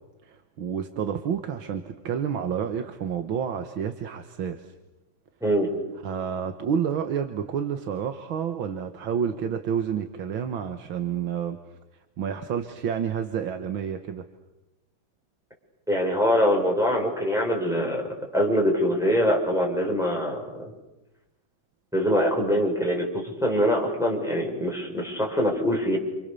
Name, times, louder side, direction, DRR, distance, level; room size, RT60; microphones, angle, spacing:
voice 1, 0.2-4.7 6.0-11.6 12.2-14.3, right 8 dB, 75° right, 7 dB, 2.1 m, -29 dB
voice 2, 15.9-18.1 18.3-20.7 21.9-26.0, equal, ahead, -1 dB, 6.8 m, -24 dB
29.0 x 29.0 x 7.0 m, 1.0 s
omnidirectional pair, 2.2 m